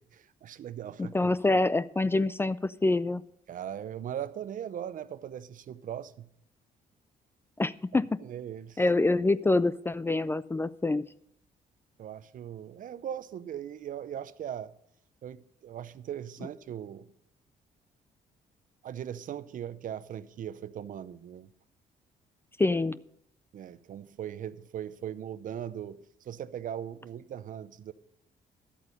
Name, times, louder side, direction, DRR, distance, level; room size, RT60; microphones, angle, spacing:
voice 1, 0.0-1.3 3.5-6.3 8.2-8.8 12.0-14.7 15.2-17.1 18.8-21.5 23.5-27.9, right 10 dB, 60° right, 0.6 m, -39 dB
voice 2, 1.0-3.2 7.6-8.2 8.8-11.1 22.6-23.0, left 2 dB, 15° left, 0.3 m, -26 dB
11.5 x 8.2 x 5.3 m
cardioid pair, 90°, 16 cm